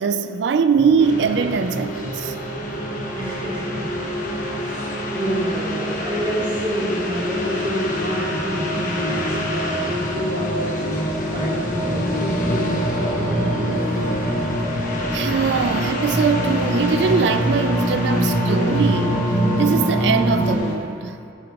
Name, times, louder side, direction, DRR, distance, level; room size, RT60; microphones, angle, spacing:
voice 1, 0.0-2.3 15.1-19.2 19.6-21.2, right 5 dB, 70° right, 0.4 m, -21 dB
sound 1, 0.7-20.6, equal, 30° left, 2.4 m, -24 dB
sound 2, 1.0-20.7, left 2 dB, 45° left, 1.1 m, -33 dB
voice 2, 3.1-4.2 4.6-11.0 11.3-13.7, equal, 25° right, 2.4 m, -29 dB
14.5 x 6.9 x 3.0 m
head